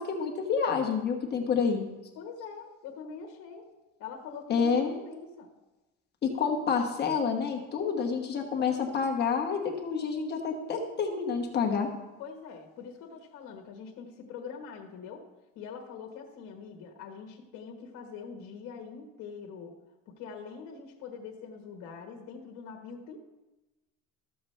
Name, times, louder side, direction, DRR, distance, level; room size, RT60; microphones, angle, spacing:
voice 1, 0.0-1.9 4.5-4.9 6.2-11.9, left 6 dB, 30° left, 2 dB, 1.1 m, -28 dB
voice 2, 2.1-3.7 4.0-5.5 12.2-15.2 15.5-19.7 20.1-23.2, left 6 dB, 60° left, 2 dB, 1.3 m, -44 dB
13.5 x 7.0 x 3.2 m, 1.1 s
cardioid pair, 170°, 32 cm